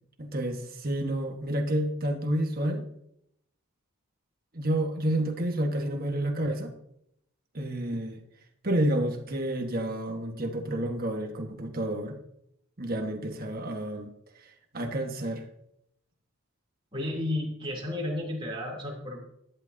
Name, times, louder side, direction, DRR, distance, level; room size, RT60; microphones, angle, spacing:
voice 1, 0.2-2.8 4.5-6.7 7.5-8.2 8.6-12.2 12.8-14.1 14.7-15.4, right 1 dB, 40° right, 4 dB, 1.5 m, -29 dB
voice 2, 16.9-19.2, left 1 dB, 25° right, -3 dB, 3.1 m, -32 dB
13.5 x 11.0 x 2.8 m, 0.75 s
head